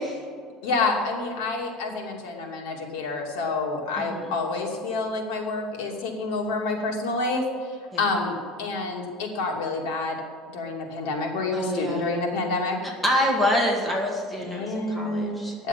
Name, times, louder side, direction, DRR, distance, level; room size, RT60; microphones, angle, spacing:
voice 1, 0.6-10.2 10.5-12.8 14.4-15.7, left 3 dB, 80° left, 0 dB, 2.6 m, -28 dB
voice 2, 11.5-12.2 13.0-15.5, equal, 5° left, -2 dB, 1.8 m, -26 dB
10.5 x 7.2 x 8.6 m, 2.1 s
cardioid pair, 170°, 0 cm